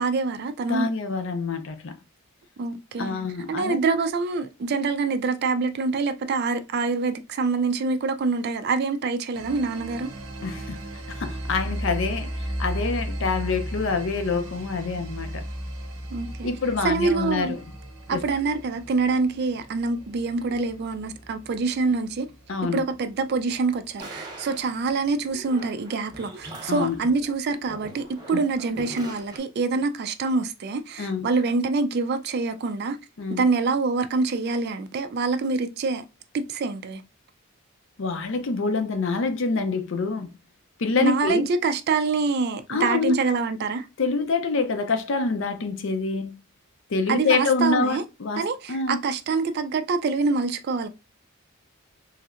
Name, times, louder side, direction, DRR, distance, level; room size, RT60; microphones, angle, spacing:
voice 1, 0.0-0.9 2.6-3.2 3.5-10.1 16.1-16.5 16.8-17.6 18.1-22.3 22.7-33.0 33.3-36.0 36.3-37.0 41.0-43.9 47.1-48.0 48.4-50.9, right 4 dB, 45° right, 0.3 m, -25 dB
voice 2, 0.7-2.0 3.0-3.8 10.4-10.8 11.1-15.5 16.4-17.6 18.1-18.2 22.5-22.8 26.7-27.0 28.3-28.4 31.0-31.3 33.2-33.4 38.0-40.3 40.8-41.5 42.7-43.2 44.0-46.3 46.9-49.0, left 4 dB, 55° left, 0.5 m, -26 dB
sound 1, 9.3-24.8, right 1 dB, 75° right, 0.7 m, -36 dB
sound 2, 24.0-29.4, right 1 dB, 20° right, 0.7 m, -42 dB
3.1 x 2.7 x 2.4 m
head